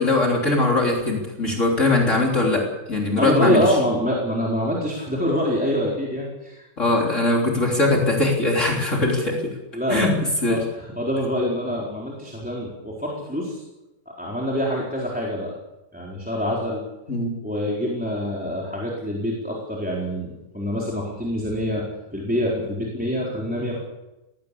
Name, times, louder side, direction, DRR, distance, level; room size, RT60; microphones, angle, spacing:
voice 1, 0.0-3.8 6.8-9.4 9.9-10.1 10.4-10.6 17.1-17.3, left 2 dB, 40° left, -1 dB, 3.8 m, -21 dB
voice 2, 3.2-6.7 9.7-10.1 10.5-13.6 14.2-15.5 15.9-16.8 17.4-21.8 22.1-23.8, equal, 5° right, -3 dB, 4.1 m, -25 dB
19.5 x 17.5 x 8.5 m, 1.0 s
omnidirectional pair, 1.9 m